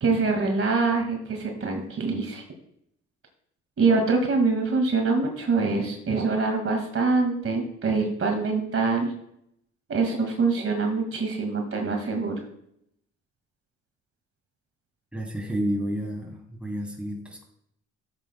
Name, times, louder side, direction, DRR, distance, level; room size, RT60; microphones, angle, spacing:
voice 1, 0.0-2.4 3.8-9.1 9.9-12.4, right 4 dB, 45° right, 3 dB, 2.0 m, -24 dB
voice 2, 15.1-17.4, equal, 5° right, 0 dB, 2.9 m, -30 dB
14.0 x 7.7 x 2.2 m, 0.73 s
cardioid pair, 90°, 30 cm